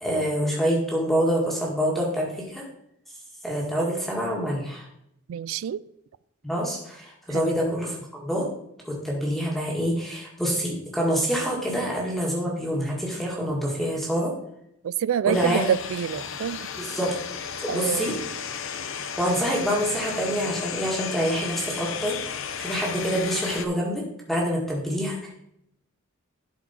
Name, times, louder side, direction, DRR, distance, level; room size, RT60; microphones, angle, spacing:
voice 1, 0.0-2.6 3.4-4.9 6.4-8.5 8.8-14.3 15.3-15.6 16.8-17.2 17.6-18.2 18.9-22.2 22.6-25.3, equal, ahead, -2 dB, 1.8 m, -26 dB
voice 2, 5.3-5.8 7.3-7.4 14.8-16.7 17.7-18.2, right 8 dB, 70° right, 19 dB, 0.3 m, -27 dB
sound 1, 15.3-23.6, left 7 dB, 65° left, 0.7 m, -34 dB
11.5 x 4.7 x 4.3 m, 0.77 s
head